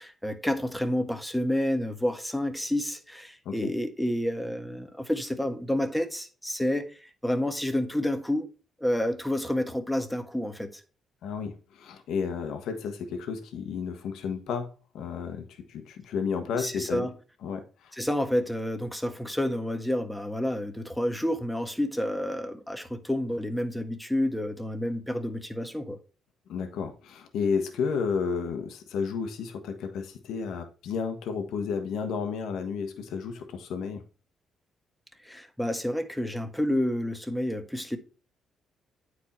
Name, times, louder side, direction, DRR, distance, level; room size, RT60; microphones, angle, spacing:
voice 1, 0.0-8.5 8.8-10.7 16.6-17.1 18.0-26.0 35.2-38.0, left 1 dB, 5° left, 1.4 m, -29 dB
voice 2, 11.2-17.1 17.4-17.9 26.5-34.0, left 6 dB, 80° left, 1.3 m, -32 dB
8.9 x 4.7 x 4.3 m
cardioid pair, 90°, 0 cm